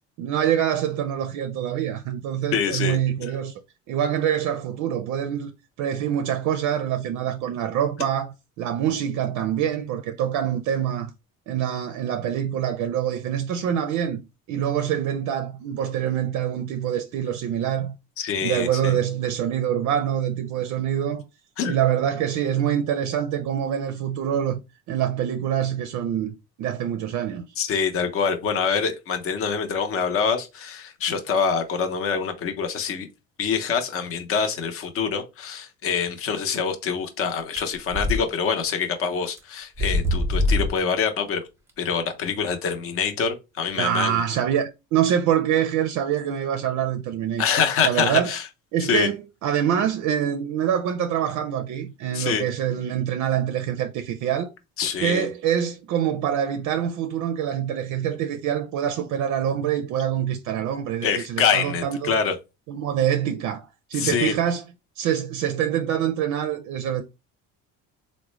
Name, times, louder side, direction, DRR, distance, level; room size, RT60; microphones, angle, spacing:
voice 1, 0.2-3.6 3.9-5.5 5.8-11.1 11.5-14.2 14.5-17.9 18.4-21.2 21.7-24.6 24.9-27.4 43.8-47.5 47.8-48.3 48.7-49.2 49.4-54.5 55.0-62.1 62.7-64.6 65.0-67.0, right 9 dB, 60° right, 0.5 m, -25 dB
voice 2, 2.5-3.0 18.2-19.0 21.6-21.7 27.6-33.1 33.4-41.4 41.8-44.2 47.4-48.4 48.8-49.1 52.1-52.4 54.8-55.3 61.0-62.3 63.9-64.3, left 6 dB, 40° left, 0.7 m, -25 dB
sound 1, 37.6-38.2 38.6-38.7 39.4-39.5 39.8-40.9, left 1 dB, 10° right, 0.7 m, -23 dB
3.6 x 2.1 x 3.0 m
cardioid pair, 135°, 33 cm